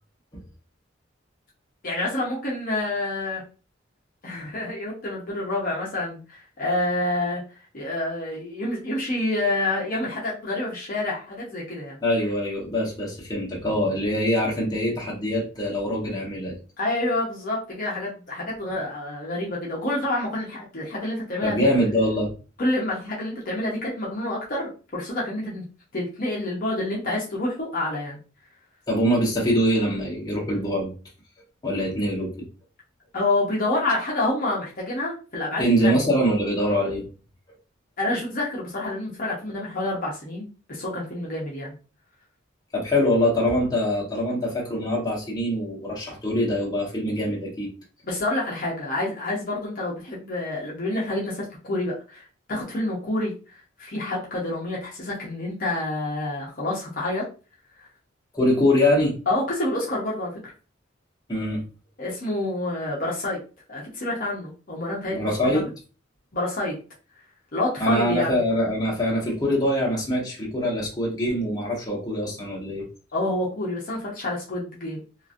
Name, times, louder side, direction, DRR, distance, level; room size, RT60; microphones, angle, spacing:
voice 1, 1.8-3.4 4.2-7.4 7.7-12.0 16.8-21.7 22.6-25.6 25.9-28.2 33.1-36.0 38.0-41.7 48.0-57.2 59.3-60.3 62.0-63.4 63.7-65.3 65.5-65.7 66.3-66.7 67.5-68.3 73.1-75.0, left 2 dB, 45° left, -4 dB, 0.7 m, -28 dB
voice 2, 12.0-16.5 21.4-22.3 28.9-30.9 31.6-32.5 35.6-37.0 42.7-47.7 58.3-59.1 61.3-61.6 65.1-65.7 67.8-72.8, equal, 20° left, -3 dB, 0.9 m, -23 dB
2.9 x 2.4 x 2.5 m, 0.35 s
head